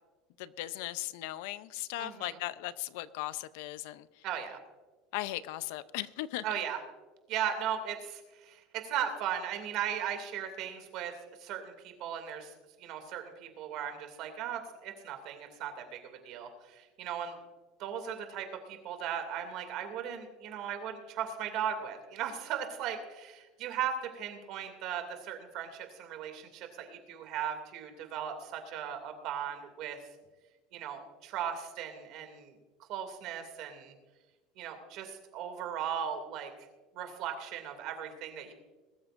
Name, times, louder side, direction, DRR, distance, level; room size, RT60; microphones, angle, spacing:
voice 1, 0.4-4.2 5.1-6.4, left 16 dB, 65° left, 15 dB, 0.6 m, -38 dB
voice 2, 2.0-2.4 4.2-4.6 6.4-6.8 7.3-11.1 11.4-12.5 12.8-17.4 17.8-30.0 30.7-32.6 32.9-33.9 34.6-36.7 36.9-38.5, right 9 dB, 45° right, 6 dB, 2.6 m, -37 dB
21.0 x 13.0 x 2.6 m, 1.2 s
cardioid pair, 165°, 0 cm